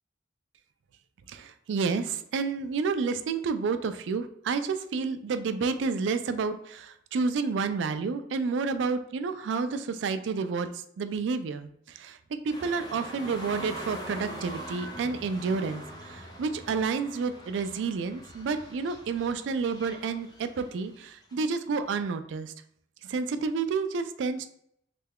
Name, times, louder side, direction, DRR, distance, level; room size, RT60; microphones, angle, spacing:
voice 1, 1.3-12.2 12.4-22.5 23.0-24.5, right 4 dB, 70° right, 10 dB, 0.3 m, -30 dB
sound 1, 12.5-21.3 21.7-21.8, right 1 dB, 20° left, 0.5 m, -43 dB
3.3 x 2.2 x 3.5 m, 0.70 s
head